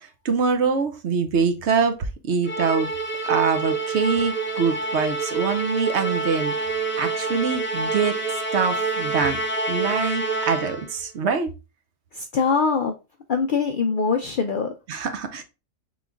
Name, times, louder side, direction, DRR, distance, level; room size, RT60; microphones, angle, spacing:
voice 1, 0.0-2.9 3.2-6.5 7.0-8.2 8.5-9.4 9.7-11.5 14.9-15.4, right 5 dB, 65° right, 0.9 m, -24 dB
Musical instrument, 2.4-11.0, right 3 dB, 15° left, 0.5 m, -27 dB
voice 2, 12.1-12.9 13.3-14.7, left 5 dB, 65° left, 0.5 m, -23 dB
3.8 x 3.1 x 3.3 m
omnidirectional pair, 1.3 m